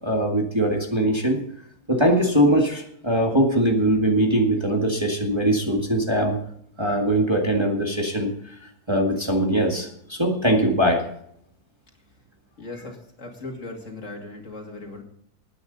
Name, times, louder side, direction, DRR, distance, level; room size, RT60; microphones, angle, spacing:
voice 1, 0.0-1.4 1.9-6.4 6.8-8.3 8.6-11.0, right 1 dB, 15° right, 0 dB, 1.9 m, -21 dB
voice 2, 12.6-15.0, left 2 dB, 55° left, 1 dB, 2.9 m, -38 dB
19.0 x 9.5 x 4.0 m, 0.70 s
omnidirectional pair, 1.6 m